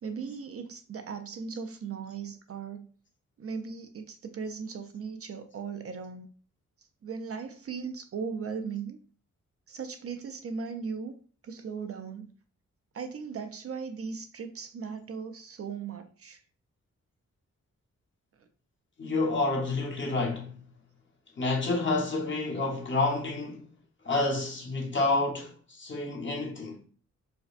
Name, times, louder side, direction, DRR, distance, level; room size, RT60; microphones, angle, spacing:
voice 1, 0.0-2.9 3.4-6.3 7.0-9.0 9.7-11.1 11.4-12.3 12.9-16.4, right 5 dB, 50° right, 0.4 m, -38 dB
voice 2, 19.0-20.6 21.4-23.7 24.0-26.8, left 3 dB, 40° left, 0.9 m, -29 dB
5.0 x 2.1 x 2.4 m
wide cardioid pair, 130°, 30 cm